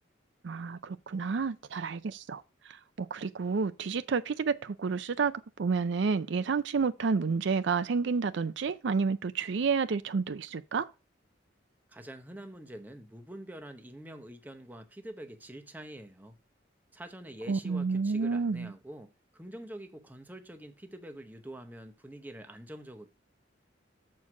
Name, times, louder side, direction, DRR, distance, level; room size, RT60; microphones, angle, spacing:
voice 1, 0.4-10.9 17.5-18.7, right 5 dB, 65° right, 0.4 m, -30 dB
voice 2, 11.9-16.4 16.9-23.1, right 1 dB, 10° right, 0.8 m, -46 dB
7.3 x 4.5 x 5.9 m
head